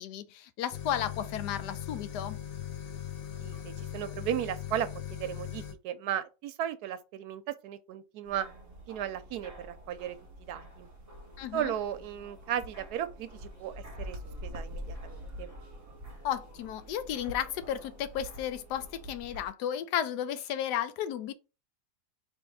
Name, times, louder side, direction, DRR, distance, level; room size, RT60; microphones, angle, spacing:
voice 1, 0.0-2.4 11.4-11.7 16.2-21.3, left 10 dB, 90° left, 1.2 m, -33 dB
sound 1, 0.7-5.7, left 10 dB, 55° left, 0.6 m, -40 dB
voice 2, 3.4-8.5 8.9-10.9 11.5-15.5, right 10 dB, 75° right, 1.1 m, -36 dB
sound 2, 8.2-19.5, equal, 20° right, 1.3 m, -46 dB
3.6 x 3.2 x 4.6 m
omnidirectional pair, 1.7 m